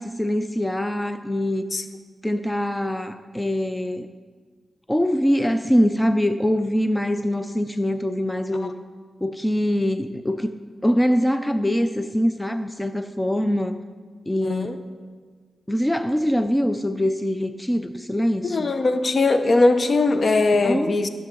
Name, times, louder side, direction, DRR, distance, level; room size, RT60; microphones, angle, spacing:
voice 1, 0.0-1.6 2.2-4.1 4.9-8.7 9.2-10.6 10.8-13.8 14.3-14.7 15.7-18.7 20.5-21.0, equal, 10° left, 9 dB, 0.4 m, -23 dB
voice 2, 14.4-14.8 18.4-21.1, left 3 dB, 55° left, 9 dB, 0.7 m, -20 dB
13.5 x 6.6 x 3.8 m, 1.5 s
cardioid pair, 65°, 0 cm